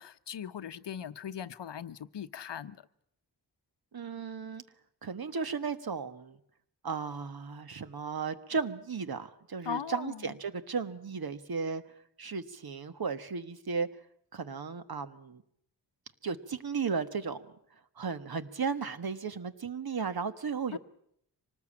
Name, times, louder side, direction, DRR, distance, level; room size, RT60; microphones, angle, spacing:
voice 1, 0.0-2.8 9.6-10.3 20.7-20.8, left 8 dB, 80° left, 0.9 m, -39 dB
voice 2, 3.9-4.6 5.0-6.4 6.8-11.8 12.2-13.9 14.3-15.4 16.2-17.4 18.0-20.8, right 5 dB, 60° right, 1.4 m, -35 dB
25.0 x 19.0 x 8.7 m
wide cardioid pair, 120°, 42 cm